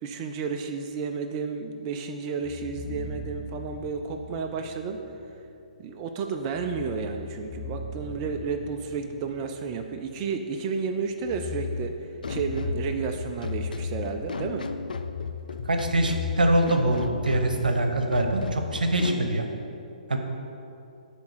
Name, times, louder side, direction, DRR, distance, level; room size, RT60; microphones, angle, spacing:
voice 1, 0.0-5.0 5.8-11.9 12.3-14.7, right 5 dB, 30° right, 4 dB, 0.4 m, -32 dB
sound 1, 2.4-5.3 6.5-10.4 11.1-15.1 15.4-17.4, left 3 dB, 15° left, 0.6 m, -39 dB
sound 2, 12.2-19.3, left 5 dB, 80° left, 0.4 m, -34 dB
voice 2, 15.6-19.5 20.1-20.2, right 1 dB, 90° right, 4 dB, 0.9 m, -24 dB
8.3 x 3.5 x 6.6 m, 2.7 s
hypercardioid pair, 140°, 4 cm